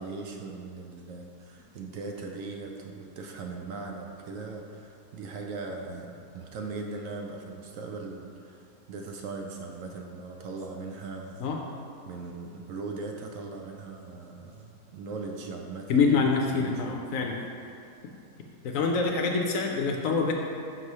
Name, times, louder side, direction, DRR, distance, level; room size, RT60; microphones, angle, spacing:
voice 1, 0.0-11.5 12.0-16.1 16.5-17.4, right 3 dB, 70° right, 2 dB, 0.8 m, -39 dB
voice 2, 15.9-17.4 18.6-20.3, left 4 dB, 70° left, 1 dB, 0.8 m, -25 dB
5.9 x 3.1 x 5.3 m, 2.5 s
omnidirectional pair, 1.7 m